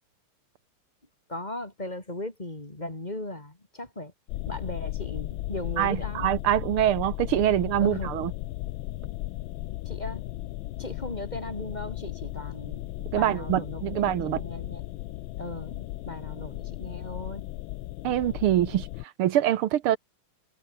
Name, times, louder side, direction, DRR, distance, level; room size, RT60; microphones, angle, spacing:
voice 1, 1.3-4.1 4.5-6.3 7.8-8.1 9.9-10.2 10.8-12.8 13.1-14.8 15.4-17.4, left 1 dB, 20° left, 2.7 m, -37 dB
sound 1, 4.3-19.0, left 17 dB, 75° left, 1.3 m, -36 dB
voice 2, 5.8-8.3 13.1-14.4 18.0-20.0, right 12 dB, 80° right, 1.8 m, -25 dB
omnidirectional pair, 2.4 m